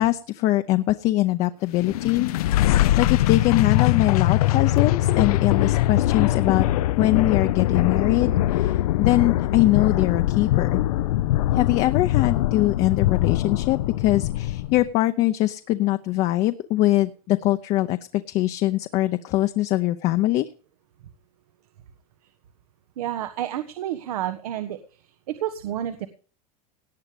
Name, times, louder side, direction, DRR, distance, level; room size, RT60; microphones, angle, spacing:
voice 1, 0.0-2.3 2.7-6.7 7.0-10.8 11.5-20.5, left 16 dB, 35° left, 8 dB, 0.7 m, -22 dB
sound 1, 1.7-14.9, left 14 dB, 90° left, 0.7 m, -22 dB
voice 2, 23.0-24.8 25.0-26.1, right 11 dB, 85° right, 10 dB, 1.4 m, -30 dB
18.0 x 8.6 x 5.1 m, 0.40 s
supercardioid pair, 160°, 19 cm